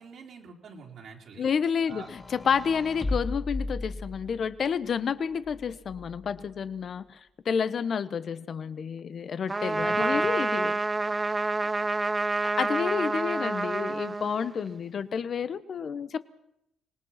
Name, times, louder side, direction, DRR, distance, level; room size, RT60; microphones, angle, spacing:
voice 1, 0.0-1.5 1.9-2.1 9.8-10.3, right 5 dB, 65° right, -2 dB, 3.8 m, -43 dB
voice 2, 1.4-7.2 7.4-10.8 12.4-16.2, left 7 dB, 55° left, 14 dB, 1.0 m, -30 dB
sound 1, 1.8-4.6 5.4-6.4, left 2 dB, 20° left, 2.7 m, -36 dB
Trumpet, 9.5-14.8, right 3 dB, 20° right, 1.0 m, -28 dB
25.0 x 19.5 x 5.8 m, 0.80 s
cardioid pair, 90°, 0 cm